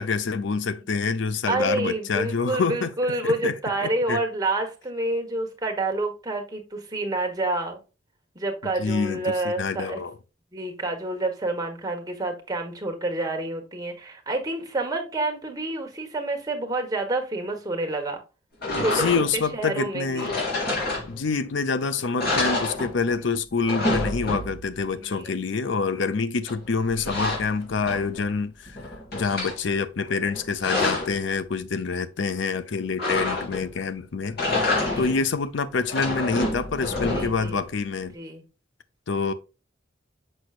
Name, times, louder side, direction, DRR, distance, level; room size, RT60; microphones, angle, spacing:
voice 1, 0.0-2.9 3.2-3.5 3.8-4.2 8.8-10.1 18.8-20.4 21.1-28.8 29.1-34.4 35.0-38.1 39.1-39.3, left 4 dB, 70° left, 0.6 m, -26 dB
voice 2, 1.5-7.8 8.3-10.0 10.5-18.2 18.8-20.4 25.0-25.3 34.7-35.2 37.0-37.6 38.1-38.4, right 2 dB, 20° right, 1.4 m, -28 dB
sound 1, 18.6-19.5 20.2-21.5 21.8-21.9 22.2-23.3 23.5-24.8 26.5-28.3 28.7-29.6 30.3-31.2 33.0-33.8 34.3-35.3 35.7-37.5, left 2 dB, 55° left, 3.6 m, -28 dB
6.3 x 6.2 x 2.5 m
head